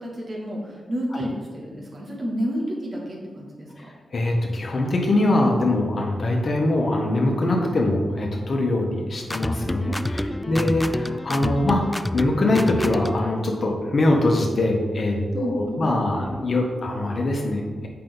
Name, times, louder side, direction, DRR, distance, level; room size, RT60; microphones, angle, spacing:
voice 1, 0.0-3.9 9.9-10.7 15.3-15.8, equal, 45° right, -3 dB, 2.4 m, -31 dB
voice 2, 4.1-17.9, left 2 dB, 55° left, 0 dB, 1.4 m, -23 dB
sound 1, 9.2-13.3, left 1 dB, 15° left, 0.3 m, -28 dB
7.4 x 5.9 x 4.0 m, 1.5 s
cardioid pair, 65°, 0 cm